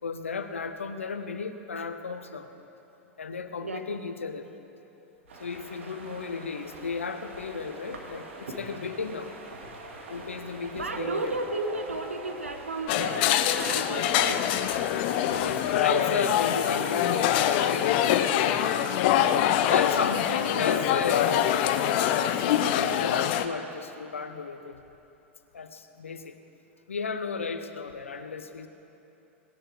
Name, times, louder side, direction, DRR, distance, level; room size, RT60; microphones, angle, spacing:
voice 1, 0.0-2.5 3.2-4.5 5.4-9.3 10.1-11.4 15.4-18.9 19.7-21.6 22.4-24.8 25.5-26.4 26.9-28.7, left 5 dB, 80° left, 9 dB, 0.8 m, -34 dB
voice 2, 3.6-4.0 10.7-14.4, right 2 dB, 85° right, 7 dB, 1.1 m, -34 dB
sound 1, 5.3-17.5, right 2 dB, 70° right, 1.9 m, -45 dB
sound 2, 11.0-13.8 14.3-14.4 14.6-14.7 15.0-15.1 16.0-16.1 16.5-16.6, right 2 dB, 35° right, 2.2 m, -42 dB
sound 3, 12.9-23.5, left 10 dB, 50° left, 0.7 m, -24 dB
19.5 x 11.0 x 4.6 m, 3.0 s
figure-of-eight pair, 90°, 7 cm